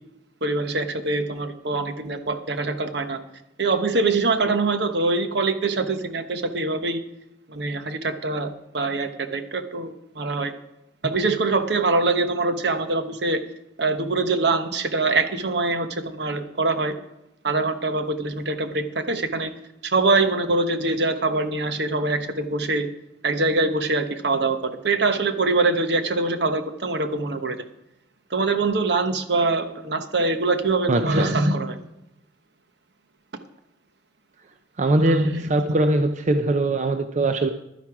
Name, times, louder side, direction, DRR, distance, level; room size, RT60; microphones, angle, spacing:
voice 1, 0.4-3.2 3.6-7.0 7.5-10.6 11.0-13.4 13.8-17.0 17.4-19.5 19.8-22.9 23.2-27.6 28.3-31.8 35.0-35.5, right 3 dB, 65° right, 8 dB, 1.0 m, -24 dB
voice 2, 30.9-31.3 34.8-37.5, right 2 dB, 40° right, 7 dB, 0.5 m, -21 dB
11.5 x 10.5 x 4.8 m, 0.88 s
head